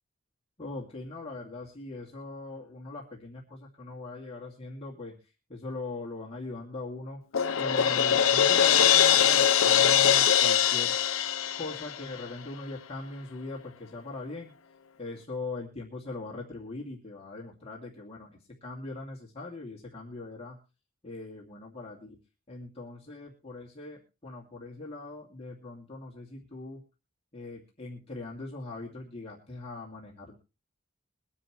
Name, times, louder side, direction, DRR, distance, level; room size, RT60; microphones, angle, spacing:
voice 1, 0.6-7.2 7.6-10.9 11.5-14.5 15.0-20.6 21.0-22.2 22.5-26.8 27.3-30.3, left 2 dB, 30° left, -3 dB, 2.3 m, -40 dB
Crash cymbal, 7.3-12.3, left 9 dB, 75° left, 0.7 m, -22 dB
23.0 x 9.8 x 3.1 m, 0.31 s
head